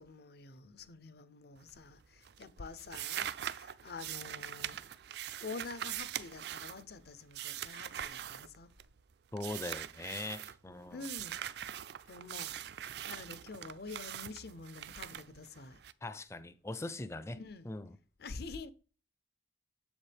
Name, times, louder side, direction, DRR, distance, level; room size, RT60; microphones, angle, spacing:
voice 1, 0.0-4.8 5.4-8.7 10.9-11.4 11.7-15.8 17.3-17.7 18.2-18.7, left 4 dB, 55° left, 0.6 m, -47 dB
sound 1, 1.6-2.0 2.2-9.0 9.4-10.6 11.0-15.9, right 11 dB, 60° right, 0.4 m, -42 dB
voice 2, 9.3-11.0 16.0-17.4 17.7-17.9, left 2 dB, 15° left, 0.4 m, -41 dB
7.6 x 7.2 x 3.4 m
head